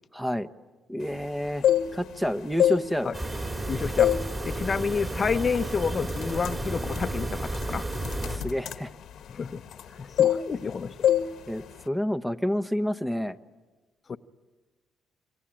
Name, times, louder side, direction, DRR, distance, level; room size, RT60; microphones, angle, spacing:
voice 1, 0.1-0.5 0.9-1.6 1.9-3.1 8.3-8.9 11.5-13.4, equal, 5° right, 10 dB, 1.0 m, -29 dB
sound 1, 1.4-2.2 2.5-3.6 4.0-4.3 4.7-4.9 5.5-5.7 6.0-9.9 10.2-10.7 11.0-11.3 11.6-11.9, left 10 dB, 75° left, 1.2 m, -25 dB
sound 2, 3.1-8.4, right 2 dB, 25° right, 4.0 m, -32 dB
voice 2, 3.7-4.1 4.4-7.8 9.3-9.6 10.0-11.1 14.1-14.2, left 5 dB, 40° left, 10 dB, 0.8 m, -29 dB
27.0 x 24.0 x 8.9 m, 1.3 s
cardioid pair, 90°, 0 cm